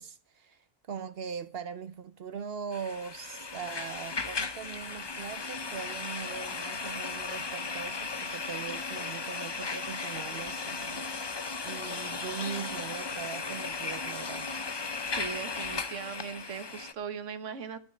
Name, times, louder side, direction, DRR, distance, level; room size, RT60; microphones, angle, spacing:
voice 1, 0.0-11.4 11.6-14.5, right 7 dB, 60° right, 0.9 m, -41 dB
sound 1, 2.7-16.9, left 4 dB, 30° left, 0.5 m, -36 dB
voice 2, 15.0-17.8, right 6 dB, 90° right, 1.4 m, -39 dB
12.5 x 6.2 x 8.3 m
omnidirectional pair, 1.2 m